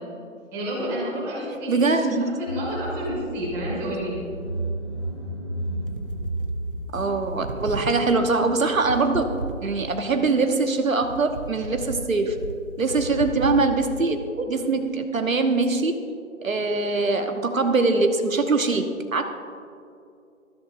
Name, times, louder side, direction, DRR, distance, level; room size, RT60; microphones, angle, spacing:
voice 1, 0.5-2.1 2.4-4.1 6.7-6.8, equal, 5° right, -7 dB, 2.3 m, -30 dB
voice 2, 1.7-2.4 6.9-9.4 9.6-12.4 12.8-16.0 16.4-19.2, right 3 dB, 75° right, 5 dB, 1.2 m, -23 dB
Car / Engine, 2.5-9.5, right 1 dB, 20° left, 0.7 m, -33 dB
sound 1, 5.9-7.1 7.3-10.1 10.5-13.8, right 4 dB, 40° right, 0.9 m, -35 dB
20.5 x 14.5 x 2.6 m, 2.5 s
figure-of-eight pair, 165°, 41 cm